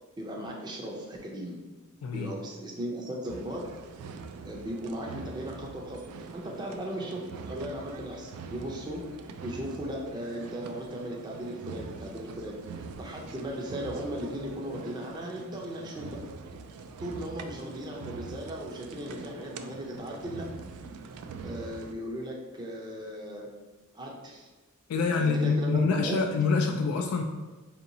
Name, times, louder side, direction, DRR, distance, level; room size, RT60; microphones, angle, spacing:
voice 1, 0.2-1.6 2.1-3.7 4.4-9.1 9.4-16.2 17.0-20.5 21.4-23.5 23.9-24.5 25.1-26.2, equal, 20° right, -2 dB, 0.4 m, -37 dB
voice 2, 2.0-2.3 24.9-27.2, left 4 dB, 85° left, 3 dB, 0.3 m, -26 dB
sound 1, 3.3-21.9, right 4 dB, 85° right, 0.3 m, -43 dB
4.5 x 2.8 x 2.6 m, 1.3 s
head